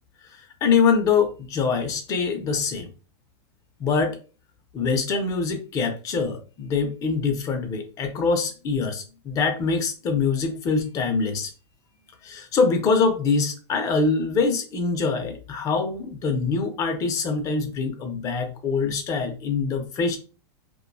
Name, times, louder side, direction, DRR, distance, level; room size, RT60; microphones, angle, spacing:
voice 1, 0.3-2.9 3.8-4.2 4.7-11.5 12.2-20.2, left 5 dB, 25° left, 5 dB, 0.5 m, -24 dB
2.6 x 2.2 x 2.3 m, 0.35 s
supercardioid pair, 155°, 14 cm